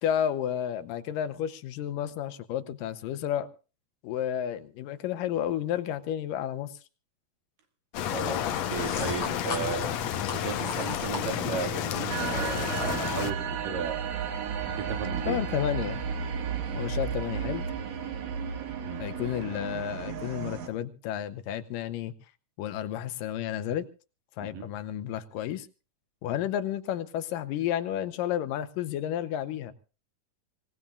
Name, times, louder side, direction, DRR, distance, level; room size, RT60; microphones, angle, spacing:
voice 1, 0.0-3.5 4.0-6.8 15.3-16.0 16.7-17.7 19.0-22.1 22.6-23.9 24.4-25.7 26.2-29.7, left 10 dB, 85° left, 2.6 m, -31 dB
sound 1, 7.9-13.3, left 10 dB, 65° left, 1.9 m, -31 dB
voice 2, 8.1-9.9 10.3-14.0 14.7-15.4 18.8-19.1 24.4-24.7, right 6 dB, 85° right, 3.8 m, -35 dB
sound 2, 8.5-11.7, left 3 dB, 50° left, 4.0 m, -38 dB
sound 3, 12.1-20.7, right 6 dB, 60° right, 2.8 m, -33 dB
25.5 x 17.5 x 2.4 m
omnidirectional pair, 3.8 m